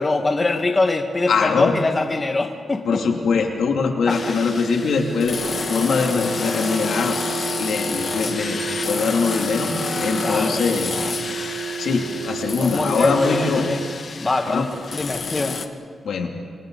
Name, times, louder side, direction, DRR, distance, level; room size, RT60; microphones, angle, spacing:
voice 1, 0.0-3.0 4.1-4.3 10.2-10.6 12.6-13.8 14.2-15.6, left 3 dB, 30° left, 4 dB, 1.6 m, -23 dB
voice 2, 1.3-1.7 2.9-5.4 5.7-7.2 7.6-9.7 10.0-10.9 11.8-13.7 14.5-14.7 16.0-16.3, left 5 dB, 90° left, 2 dB, 2.7 m, -22 dB
sound 1, 4.1-15.7, left 4 dB, 50° left, 1.3 m, -29 dB
sound 2, 4.1-14.0, right 7 dB, 70° right, 0.9 m, -31 dB
29.5 x 27.0 x 4.0 m, 2.1 s
wide cardioid pair, 110°, 0 cm